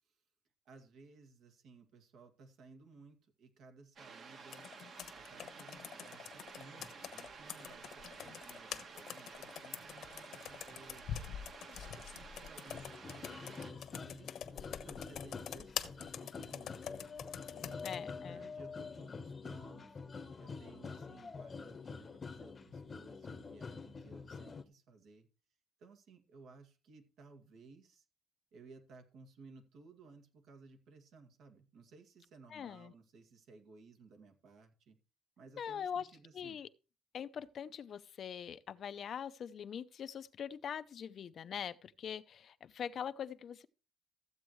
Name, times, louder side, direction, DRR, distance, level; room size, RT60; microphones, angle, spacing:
voice 1, 0.7-4.7 5.1-11.2 11.7-14.3 14.7-16.8 17.5-20.0 20.4-25.3 25.8-28.0 28.5-35.0 35.4-36.6, right 4 dB, 75° right, 2.1 m, -59 dB
sound 1, 4.0-13.7, right 5 dB, 50° right, 1.4 m, -52 dB
Computer keyboard, 4.5-18.0, left 9 dB, 65° left, 1.1 m, -46 dB
sound 2, 12.7-24.6, left 4 dB, 30° left, 0.9 m, -47 dB
voice 2, 17.8-18.5 32.5-32.9 35.6-36.1 36.3-36.7 37.1-43.7, left 8 dB, 50° left, 0.6 m, -43 dB
14.5 x 8.1 x 3.1 m
cardioid pair, 135°, 0 cm